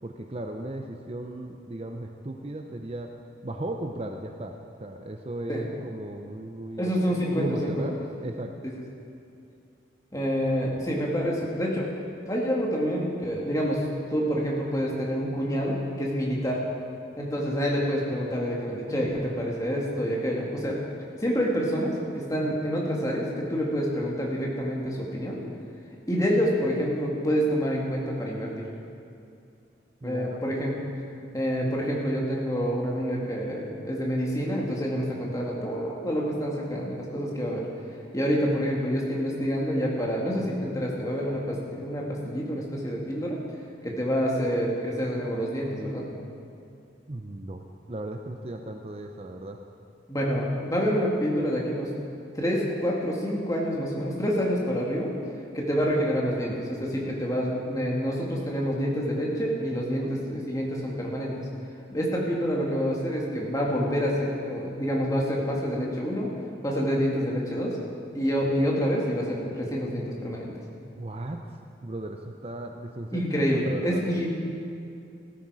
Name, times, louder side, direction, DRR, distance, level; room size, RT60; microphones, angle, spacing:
voice 1, 0.0-3.1 3.4-8.5 18.9-19.1 30.0-30.4 47.1-49.6 59.9-60.1 71.0-71.5 71.8-73.2 73.6-74.0, right 1 dB, 30° right, 4 dB, 0.6 m, -36 dB
voice 2, 6.8-7.8 10.1-11.9 12.3-13.8 14.1-16.6 17.2-20.8 21.2-25.4 26.1-28.7 30.0-30.7 31.3-37.7 38.1-43.4 43.8-46.1 50.1-51.9 52.3-55.1 55.5-61.3 61.9-66.3 66.6-67.8 68.1-70.5 73.1-74.3, equal, 20° left, -3 dB, 2.1 m, -27 dB
15.5 x 13.5 x 4.9 m, 2.5 s
head